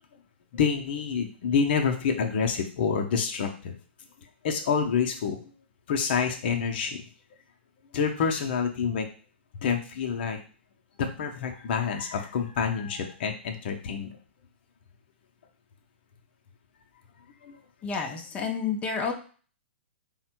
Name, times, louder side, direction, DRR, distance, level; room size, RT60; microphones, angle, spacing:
voice 1, 0.5-3.8 4.4-5.4 5.9-7.0 7.9-9.1 9.6-10.4 11.0-14.1 17.4-17.6, left 6 dB, 60° left, 3 dB, 0.7 m, -27 dB
voice 2, 17.8-19.1, left 5 dB, 20° left, 2 dB, 0.7 m, -30 dB
3.5 x 2.2 x 4.4 m, 0.39 s
hypercardioid pair, 130°, 6 cm